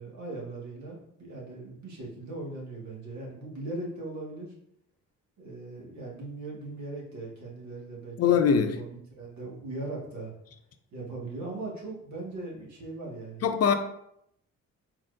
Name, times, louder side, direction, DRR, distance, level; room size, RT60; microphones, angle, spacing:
voice 1, 0.0-4.5 5.4-8.9 9.2-10.3 10.9-13.5, right 2 dB, 65° right, 1.7 m, -39 dB
voice 2, 8.2-8.8 13.4-13.7, left 7 dB, 55° left, 0.6 m, -22 dB
4.3 x 4.2 x 2.6 m
cardioid pair, 90°, 30 cm